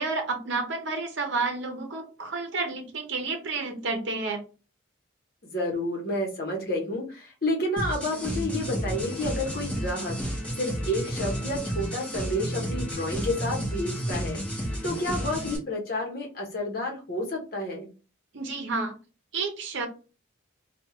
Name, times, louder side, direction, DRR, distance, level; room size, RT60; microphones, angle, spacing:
voice 1, 0.0-4.4 18.3-18.9 19.3-19.9, right 3 dB, 60° right, 4 dB, 0.8 m, -30 dB
voice 2, 5.4-10.2 10.6-17.9, left 1 dB, 50° left, -1 dB, 1.0 m, -30 dB
sound 1, 7.8-15.6, equal, 5° left, 1.2 m, -32 dB
3.5 x 2.3 x 2.9 m, 0.34 s
head